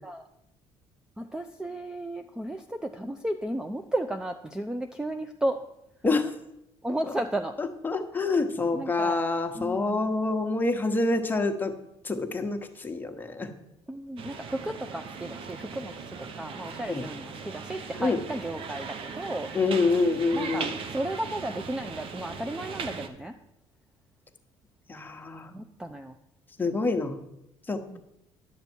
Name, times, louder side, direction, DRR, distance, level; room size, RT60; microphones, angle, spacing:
voice 1, 1.2-5.6 6.8-7.6 8.7-9.2 9.5-10.1 13.9-19.5 20.3-23.3 25.5-26.2 27.9-28.0, right 1 dB, 5° right, 7 dB, 0.4 m, -34 dB
voice 2, 7.6-11.7 12.0-13.5 16.9-17.0 18.0-18.2 19.5-20.7 24.9-25.5 26.6-27.2 27.7-28.0, left 3 dB, 15° left, 5 dB, 1.1 m, -27 dB
sound 1, 14.2-23.1, right 5 dB, 55° right, 0.9 m, -39 dB
10.5 x 6.8 x 4.5 m, 0.83 s
cardioid pair, 110°, 11 cm